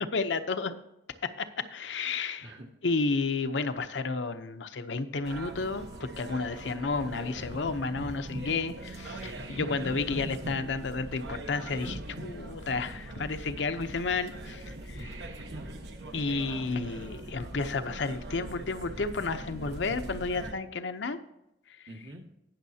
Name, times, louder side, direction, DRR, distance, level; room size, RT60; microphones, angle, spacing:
voice 1, 0.1-0.8 1.2-2.5 2.8-15.1 16.1-21.2, left 4 dB, 75° left, 9 dB, 0.7 m, -32 dB
sound 1, 5.2-20.5, right 1 dB, 65° right, 1.1 m, -41 dB
voice 2, 9.2-9.9 15.0-15.8 21.9-22.2, right 1 dB, 85° right, 0 dB, 2.0 m, -44 dB
19.0 x 6.3 x 2.8 m, 0.86 s
head